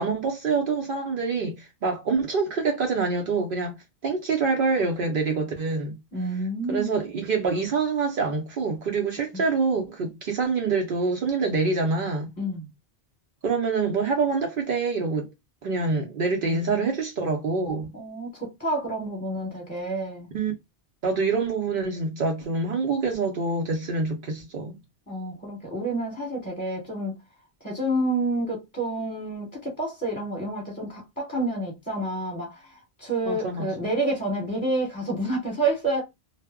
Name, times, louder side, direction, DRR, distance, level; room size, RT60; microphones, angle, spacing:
voice 1, 0.0-3.8 4.0-6.0 6.7-12.3 13.4-15.3 15.6-17.9 20.3-20.5 21.0-24.7 33.3-33.7, right 4 dB, 60° right, 0.7 m, -26 dB
voice 2, 6.1-6.9 9.3-9.4 12.4-12.7 16.4-16.9 17.9-20.3 25.1-27.1 27.6-32.6 33.0-36.0, right 2 dB, 10° left, 1.0 m, -29 dB
2.0 x 2.0 x 3.4 m
omnidirectional pair, 1.1 m